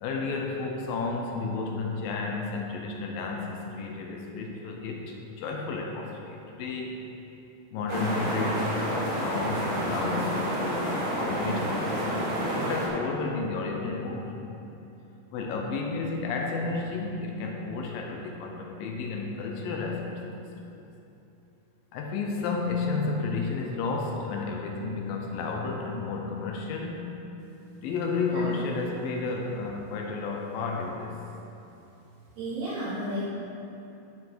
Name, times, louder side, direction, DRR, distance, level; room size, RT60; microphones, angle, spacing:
voice 1, 0.0-6.9 7.7-14.3 15.3-20.1 20.7-20.8 21.9-27.1 27.8-31.2, left 4 dB, 75° left, 1 dB, 2.3 m, -32 dB
sound 1, 7.9-12.9, equal, 40° right, 1.1 m, -29 dB
voice 2, 28.3-28.6 32.4-33.2, right 1 dB, 80° right, -14 dB, 4.6 m, -33 dB
11.5 x 5.7 x 4.6 m, 2.9 s
omnidirectional pair, 4.6 m